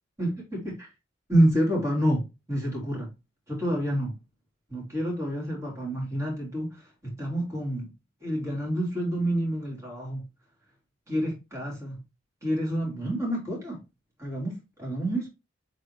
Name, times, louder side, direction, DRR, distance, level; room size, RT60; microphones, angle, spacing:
voice 1, 0.2-0.9 1.3-3.1 3.5-4.2 4.7-7.9 8.2-10.2 11.1-12.0 12.4-13.8 14.2-15.3, right 1 dB, 15° right, 3.5 m, -28 dB
7.7 x 4.0 x 3.4 m
head